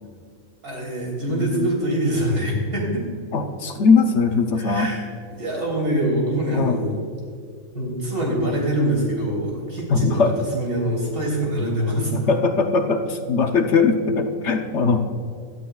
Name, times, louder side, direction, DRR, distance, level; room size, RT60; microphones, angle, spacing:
voice 1, 0.6-3.0 4.6-5.0 5.4-7.0 7.7-10.2 10.5-12.1, right 1 dB, 90° right, -3 dB, 4.0 m, -24 dB
voice 2, 1.3-1.7 3.3-4.9 6.5-6.8 9.9-10.3 12.1-15.0, left 4 dB, 60° left, 6 dB, 1.0 m, -20 dB
17.0 x 12.5 x 2.3 m, 2.2 s
omnidirectional pair, 1.5 m